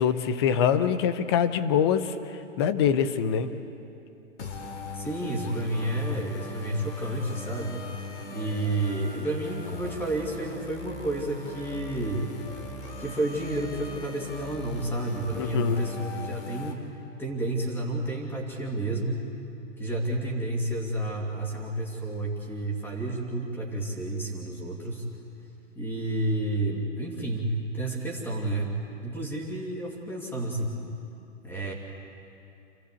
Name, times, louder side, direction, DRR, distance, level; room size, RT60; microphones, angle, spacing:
voice 1, 0.0-2.1 2.6-3.5 15.4-15.8, left 8 dB, 20° left, 11 dB, 0.6 m, -24 dB
sound 1, 4.4-16.7, left 3 dB, 60° left, 3.1 m, -39 dB
voice 2, 4.9-7.8 8.3-12.3 13.0-16.8 17.2-19.2 19.8-25.1 25.7-28.8 29.0-30.8 31.4-31.7, right 1 dB, 5° left, -1 dB, 2.5 m, -30 dB
28.0 x 15.0 x 8.4 m, 2.7 s
hypercardioid pair, 155°, 38 cm